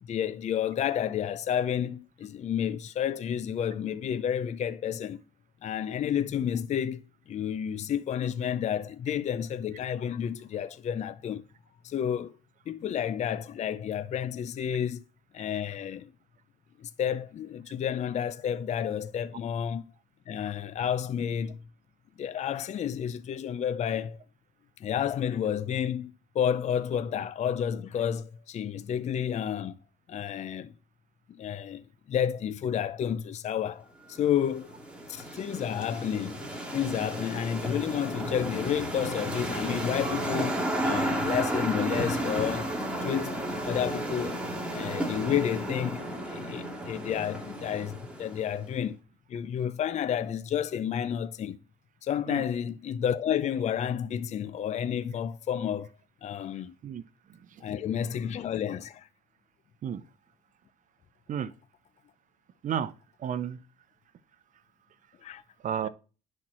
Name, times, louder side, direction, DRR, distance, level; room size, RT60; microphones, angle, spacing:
voice 1, 0.0-5.2 5.6-11.4 11.8-12.4 12.7-15.0 15.3-16.1 16.8-19.8 20.3-21.6 22.2-24.2 24.8-29.8 30.1-30.7 31.3-34.7 35.1-36.4 36.7-42.7 43.0-44.4 44.7-49.0 49.3-51.6 52.0-55.9 56.2-56.7 57.6-59.1 65.2-65.4, left 9 dB, 45° left, 0.5 m, -31 dB
sound 1, 34.1-48.7, right 1 dB, 5° right, 2.6 m, -33 dB
voice 2, 57.3-57.6 59.8-60.0 61.3-61.5 62.6-62.9 63.2-63.6 65.6-65.9, right 8 dB, 50° right, 0.8 m, -32 dB
10.5 x 4.5 x 6.2 m
cardioid pair, 110°, 17 cm